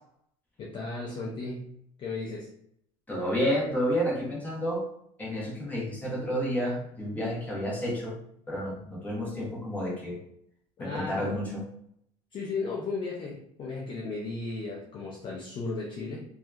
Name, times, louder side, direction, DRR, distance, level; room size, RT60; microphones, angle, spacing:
voice 1, 0.6-1.7 2.0-2.5 10.8-11.5 12.3-16.3, left 3 dB, 35° left, -4 dB, 0.5 m, -35 dB
voice 2, 3.1-4.8 5.2-8.2 8.5-10.2 10.8-11.6, equal, 10° left, -5 dB, 0.9 m, -30 dB
2.7 x 2.2 x 2.3 m, 0.72 s
supercardioid pair, 130°, 15 cm